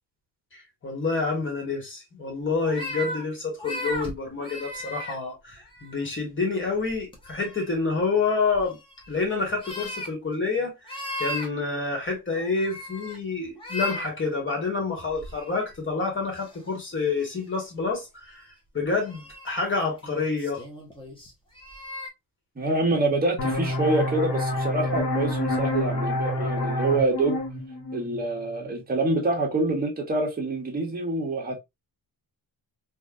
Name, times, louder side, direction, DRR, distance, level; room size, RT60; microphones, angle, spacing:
voice 1, 0.5-8.8 9.1-10.8 11.2-18.5 18.7-20.6, left 4 dB, 30° left, 1.5 m, -28 dB
sound 1, 2.6-3.2 3.6-5.1 5.5-6.0 6.9-7.7 8.5-9.1 9.5-10.1 10.9-11.5 12.3-13.2 13.6-14.1 15.1-15.7 16.3-16.5 17.2-17.4 19.0-19.5 20.0-22.1, left 1 dB, 15° left, 0.9 m, -36 dB
voice 2, 22.6-27.4 27.9-31.6, right 2 dB, 25° right, 1.0 m, -26 dB
sound 2, 23.4-28.8, left 1 dB, 70° left, 1.1 m, -28 dB
3.3 x 2.6 x 2.4 m
wide cardioid pair, 150°, 39 cm